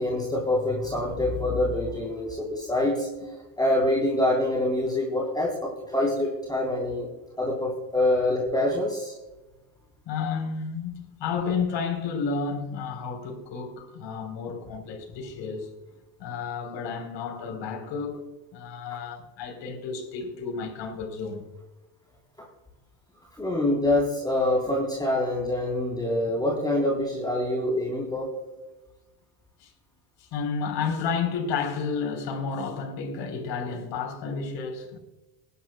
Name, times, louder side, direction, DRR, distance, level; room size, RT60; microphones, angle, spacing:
voice 1, 0.0-3.1 3.6-7.1 7.4-9.1 23.4-28.3, left 1 dB, 10° left, 3.3 m, -25 dB
voice 2, 10.1-15.7 16.2-18.2 18.5-21.4 29.6-29.7 30.2-35.0, left 5 dB, 60° left, 3.8 m, -31 dB
21.0 x 11.0 x 2.2 m
supercardioid pair, 95°, 48 cm